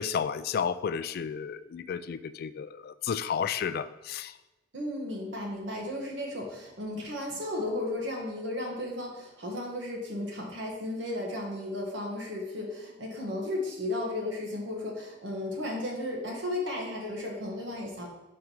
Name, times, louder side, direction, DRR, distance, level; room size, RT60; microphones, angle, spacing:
voice 1, 0.0-4.3, left 7 dB, 55° left, 14 dB, 0.3 m, -32 dB
voice 2, 4.7-18.1, left 1 dB, 70° right, -1 dB, 1.3 m, -34 dB
5.5 x 4.9 x 4.6 m, 1.0 s
head